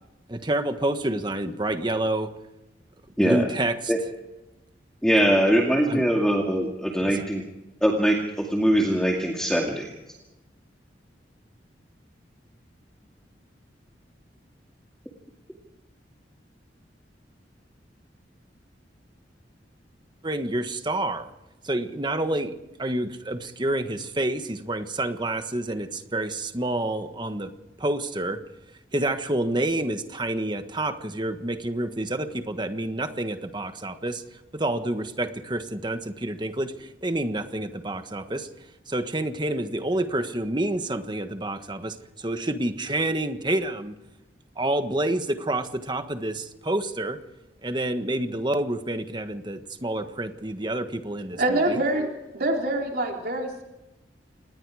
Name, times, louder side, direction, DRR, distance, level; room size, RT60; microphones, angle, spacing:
voice 1, 0.3-2.3 3.2-4.1 5.1-5.4 5.9-6.0 7.0-7.2 20.2-21.3 21.6-22.5 22.8-27.5 27.8-28.4 28.9-34.2 34.5-38.5 38.9-43.9 44.6-47.2 47.6-51.8, right 1 dB, 25° right, 8 dB, 1.5 m, -28 dB
voice 2, 5.0-7.4 7.8-9.9, equal, 5° left, 0 dB, 2.3 m, -22 dB
voice 3, 51.3-52.1 52.3-53.6, right 1 dB, 55° right, 1 dB, 3.7 m, -25 dB
27.5 x 20.0 x 4.9 m, 0.99 s
head